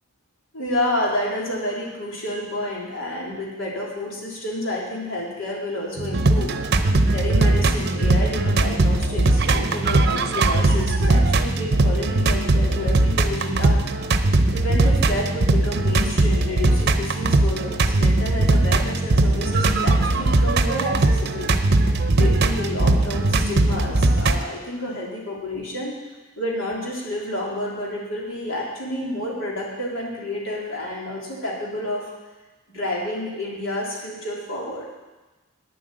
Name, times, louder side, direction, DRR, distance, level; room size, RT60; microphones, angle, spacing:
voice 1, 0.5-6.5 7.1-13.9 14.5-21.5 22.1-25.9 26.4-32.1 32.7-34.9, left 1 dB, 80° left, -4 dB, 3.2 m, -29 dB
sound 1, 6.0-24.4, right 2 dB, 55° right, 0.7 m, -19 dB
9.3 x 7.7 x 8.6 m, 1.2 s
head